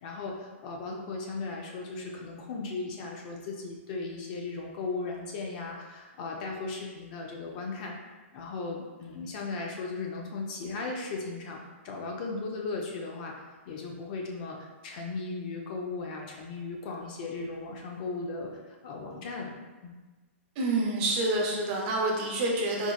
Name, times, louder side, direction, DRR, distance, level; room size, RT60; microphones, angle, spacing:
voice 1, 0.0-8.0 8.3-19.5 19.8-19.9, left 3 dB, 40° left, 0 dB, 0.5 m, -37 dB
voice 2, 20.6-22.9, right 2 dB, 35° right, -1 dB, 0.6 m, -27 dB
4.3 x 2.1 x 2.3 m, 1.2 s
hypercardioid pair, 150°, 7 cm